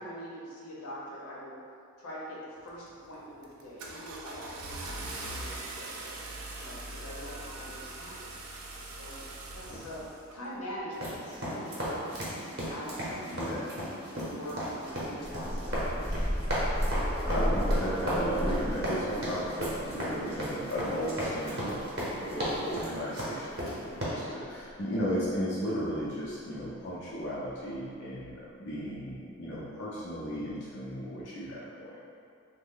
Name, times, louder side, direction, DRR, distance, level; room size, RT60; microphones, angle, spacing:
voice 1, 0.0-1.6 2.0-2.4 2.6-6.1 6.6-8.3 8.8-9.2 9.5-10.1 10.3-13.6 14.1-16.2 24.2-24.4, equal, 90° left, -6 dB, 0.7 m, -44 dB
Car / Engine starting, 2.6-3.0 3.4-10.4, right 2 dB, 75° right, 0.4 m, -41 dB
sound 1, 10.9-24.0, equal, 45° right, 0.8 m, -35 dB
voice 2, 13.3-13.6 17.3-32.0, equal, 50° left, -8 dB, 0.6 m, -35 dB
sound 2, 15.1-22.8 23.9-24.0 24.4-24.5, equal, 5° left, 0.3 m, -33 dB
3.2 x 2.1 x 3.7 m, 2.4 s
head